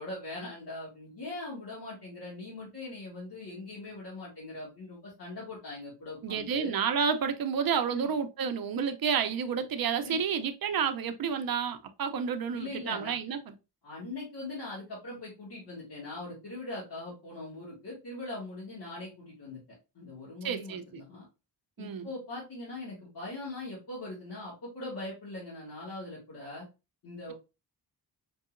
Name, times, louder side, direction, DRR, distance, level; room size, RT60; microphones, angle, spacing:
voice 1, 0.0-6.7 7.9-8.1 10.0-10.2 12.5-13.1 13.8-19.6 19.9-21.2 21.8-26.7 27.0-27.3, left 2 dB, 65° left, 2.0 m, -41 dB
voice 2, 6.2-13.5 20.4-21.0 21.8-22.1, right 6 dB, 60° right, 0.6 m, -30 dB
5.3 x 2.8 x 2.4 m
wide cardioid pair, 165°, 41 cm